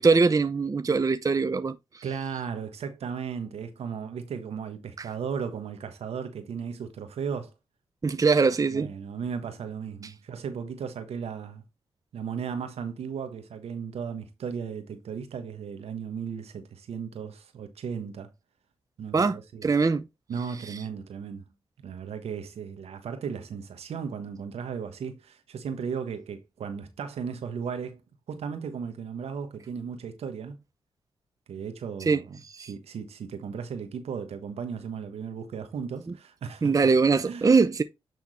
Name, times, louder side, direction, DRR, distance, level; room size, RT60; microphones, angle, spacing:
voice 1, 0.0-2.0 5.0-5.1 8.0-8.9 19.1-20.0 32.1-32.2 32.5-32.7 36.6-37.8, right 4 dB, 35° right, 0.6 m, -22 dB
voice 2, 2.0-7.5 8.7-11.6 12.1-18.3 19.0-19.6 20.3-21.4 21.8-28.0 28.3-30.6 31.5-36.8 37.2-37.5, right 6 dB, 75° right, 1.3 m, -36 dB
9.3 x 3.6 x 4.2 m
supercardioid pair, 45°, 11 cm